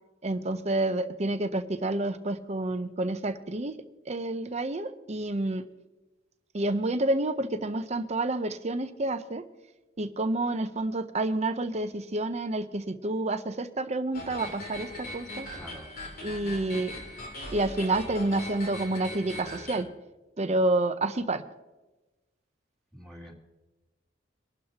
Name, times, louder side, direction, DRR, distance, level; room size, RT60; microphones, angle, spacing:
voice 1, 0.2-3.8 4.1-5.6 6.5-9.4 10.0-15.5 16.2-16.9 17.5-19.9 20.4-21.4, right 2 dB, 35° right, 10 dB, 0.8 m, -29 dB
sound 1, 14.1-19.8, left 1 dB, 50° left, 2.8 m, -40 dB
voice 2, 15.5-15.9 22.9-23.3, equal, ahead, -2 dB, 2.7 m, -45 dB
24.5 x 12.0 x 2.9 m, 1.1 s
head